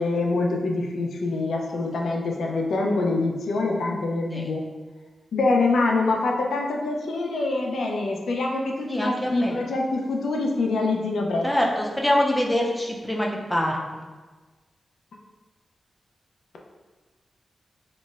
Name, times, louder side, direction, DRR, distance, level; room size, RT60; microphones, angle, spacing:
voice 1, 0.0-4.6 5.3-11.7, left 3 dB, 90° left, 0 dB, 0.4 m, -25 dB
voice 2, 8.9-9.6 11.4-11.6 12.0-13.8, left 1 dB, 10° left, -1 dB, 0.4 m, -24 dB
3.9 x 2.0 x 2.4 m, 1.3 s
wide cardioid pair, 155°, 0 cm